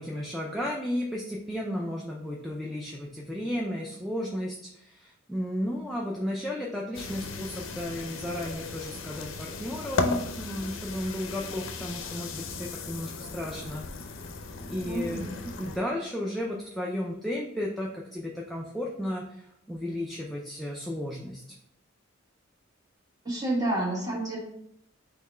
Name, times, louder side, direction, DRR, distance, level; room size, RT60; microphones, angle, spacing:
voice 1, 0.0-14.2 14.5-21.4, left 1 dB, ahead, -4 dB, 0.4 m, -34 dB
sound 1, 6.9-15.8, left 3 dB, 80° left, 0.5 m, -36 dB
voice 2, 14.8-15.5 23.2-24.4, right 1 dB, 20° right, -3 dB, 1.3 m, -30 dB
4.0 x 3.1 x 4.3 m, 0.72 s
head